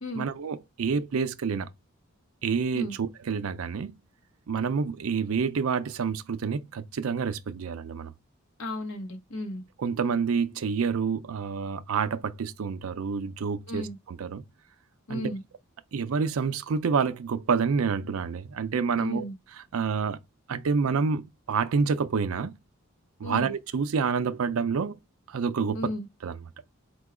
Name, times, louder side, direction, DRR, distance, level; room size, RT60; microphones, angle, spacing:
voice 1, 0.2-1.7 2.4-3.9 4.5-8.1 9.8-14.4 15.1-15.3 15.9-19.2 19.7-20.2 20.5-22.5 23.2-25.0 25.3-25.9 26.2-26.4, right 5 dB, 80° right, 0.4 m, -28 dB
voice 2, 8.6-9.6 13.7-14.0 15.1-15.4 19.0-19.3 23.2-23.5 25.7-26.1, left 1 dB, 70° left, 1.0 m, -34 dB
4.4 x 2.2 x 4.7 m
head